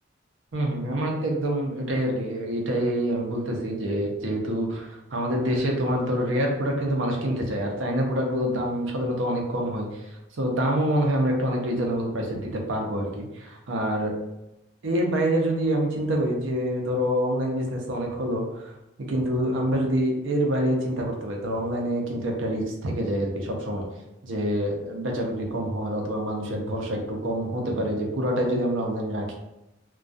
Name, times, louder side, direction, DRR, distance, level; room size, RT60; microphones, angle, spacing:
voice 1, 0.5-10.1 10.4-14.1 14.8-18.7 19.1-23.9 24.2-29.3, equal, 75° right, 1 dB, 0.6 m, -26 dB
2.2 x 2.2 x 2.5 m, 0.91 s
head